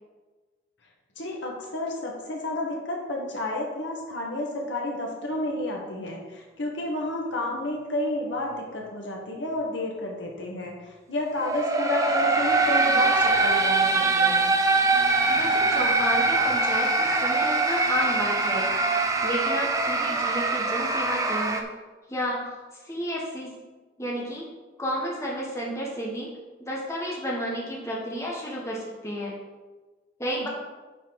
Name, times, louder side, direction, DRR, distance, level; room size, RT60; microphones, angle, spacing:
voice 1, 1.2-14.5 30.4-30.5, left 1 dB, 80° left, -1 dB, 1.8 m, -31 dB
sound 1, 11.3-21.6, right 3 dB, 20° right, 0.6 m, -23 dB
voice 2, 15.3-18.6 19.2-21.6 22.1-22.5 22.8-23.5 24.0-24.5 24.8-26.3 26.6-29.3 30.2-30.5, equal, 15° left, -3 dB, 1.4 m, -31 dB
9.6 x 4.9 x 4.8 m, 1.3 s
head